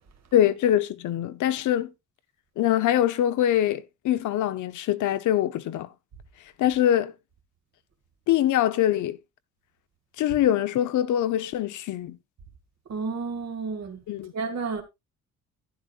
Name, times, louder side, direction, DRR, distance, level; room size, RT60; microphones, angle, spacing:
voice 1, 0.3-1.9 2.6-5.9 6.6-7.1 8.3-9.2 10.2-12.2 14.1-14.3, left 11 dB, 80° left, 0.9 m, -23 dB
voice 2, 12.9-14.0 14.3-14.8, right 4 dB, 60° right, 2.0 m, -31 dB
11.5 x 9.9 x 2.5 m
cardioid pair, 90°, 30 cm